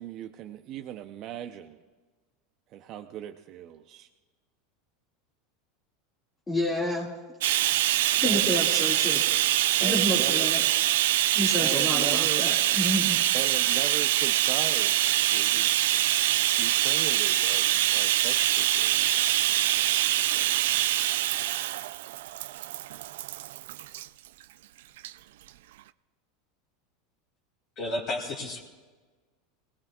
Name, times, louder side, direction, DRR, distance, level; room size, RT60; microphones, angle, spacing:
voice 1, 0.0-1.8 2.7-4.1 8.2-8.5 9.8-10.5 11.6-12.4 13.3-15.9 16.6-19.1, right 11 dB, 40° right, 6 dB, 0.6 m, -38 dB
voice 2, 6.5-7.1 8.1-9.2 9.8-10.6 11.3-13.2, equal, 10° left, -4 dB, 2.0 m, -29 dB
Bathtub (filling or washing), 7.4-24.1 25.0-25.1 25.5-25.6, right 14 dB, 80° right, 0.4 m, -24 dB
voice 3, 27.8-28.6, left 1 dB, 35° left, -1 dB, 2.4 m, -32 dB
26.5 x 19.0 x 2.4 m, 1.3 s
supercardioid pair, 150°, 0 cm